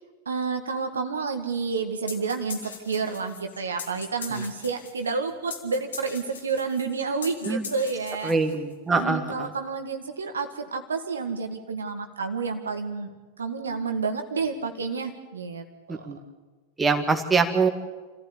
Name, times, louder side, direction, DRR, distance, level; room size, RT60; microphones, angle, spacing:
voice 1, 0.3-8.3 8.9-13.1 13.4-16.1, right 5 dB, 70° right, 6 dB, 1.8 m, -30 dB
sound 1, 2.1-8.8, left 5 dB, 70° left, 2.7 m, -40 dB
voice 2, 8.2-9.5 15.9-16.2 16.8-17.7, right 4 dB, 15° right, 5 dB, 2.1 m, -24 dB
27.5 x 15.0 x 8.6 m, 1.3 s
figure-of-eight pair, 90°, 0 cm